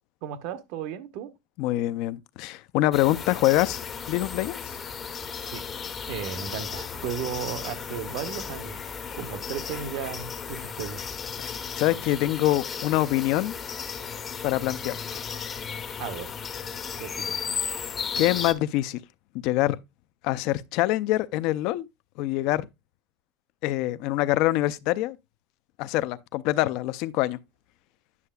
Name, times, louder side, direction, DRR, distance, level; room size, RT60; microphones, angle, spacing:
voice 1, 0.2-1.3 5.4-5.6 6.1-8.8 9.1-11.0 16.0-16.3 17.0-17.4, right 8 dB, 60° right, 1.0 m, -35 dB
voice 2, 1.6-4.8 11.4-13.5 14.4-15.2 17.6-17.8 18.2-19.0 19.3-19.8 20.2-21.9 22.2-22.7 23.6-25.2 25.8-27.4, left 16 dB, 55° left, 0.5 m, -25 dB
sound 1, 2.9-18.5, left 6 dB, 20° left, 0.7 m, -35 dB
9.7 x 6.6 x 2.3 m
supercardioid pair, 155°, 0 cm